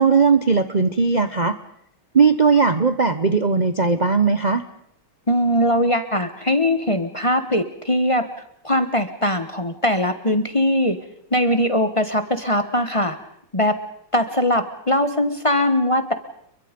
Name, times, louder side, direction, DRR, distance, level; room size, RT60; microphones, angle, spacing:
voice 1, 0.0-1.5 2.1-4.6, right 5 dB, 50° right, 10 dB, 0.5 m, -18 dB
voice 2, 5.3-8.3 8.6-11.0 11.3-13.2 13.5-13.8 14.1-16.1, left 1 dB, 20° left, 9 dB, 1.0 m, -20 dB
29.5 x 23.0 x 5.3 m, 0.70 s
omnidirectional pair, 2.4 m